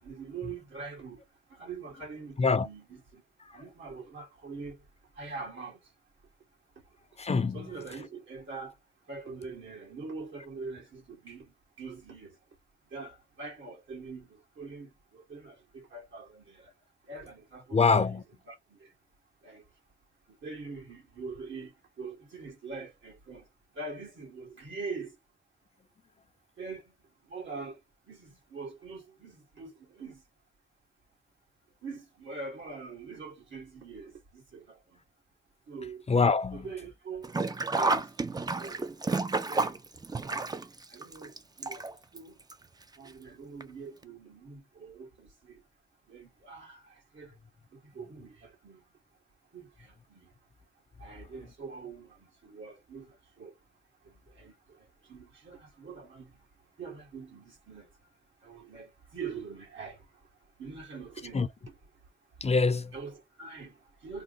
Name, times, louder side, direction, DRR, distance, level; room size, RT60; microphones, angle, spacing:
voice 1, 0.0-1.2 1.5-3.2 3.5-4.8 5.2-5.8 7.5-8.8 9.1-12.4 12.9-16.7 17.1-18.9 19.4-19.6 20.3-23.5 23.7-25.2 26.6-26.9 27.2-27.8 28.1-30.2 31.8-35.0 35.7-36.1 36.5-37.3 37.7-38.8 39.5-39.8 40.2-40.5 40.9-42.4 43.0-45.6 46.1-47.4 47.7-48.8 49.5-50.3 51.0-53.5 54.0-56.4 56.8-57.9 58.4-60.1 60.6-61.7 62.9-64.2, right 4 dB, 75° right, 2.2 m, -44 dB
voice 2, 7.2-7.6 17.7-18.2 36.1-36.6 61.3-61.5 62.4-62.9, left 4 dB, 35° left, 0.5 m, -24 dB
Sink (filling or washing), 37.2-42.2 42.5-42.6 43.6-43.7 44.0-44.1, right 3 dB, 20° right, 0.4 m, -30 dB
3.8 x 2.1 x 3.9 m
cardioid pair, 80°, 20 cm